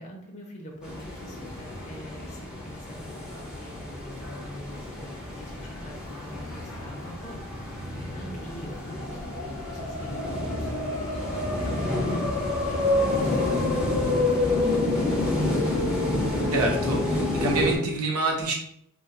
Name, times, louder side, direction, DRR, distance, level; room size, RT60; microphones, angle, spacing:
voice 1, 0.0-15.6, equal, 30° left, 0 dB, 0.6 m, -44 dB
sound 1, 0.7-18.0, equal, 45° right, 1.0 m, -46 dB
sound 2, 0.8-17.8, left 2 dB, 5° right, 0.8 m, -28 dB
voice 2, 16.5-18.5, right 2 dB, 75° right, -1 dB, 0.9 m, -27 dB
2.5 x 2.4 x 4.1 m, 0.71 s
head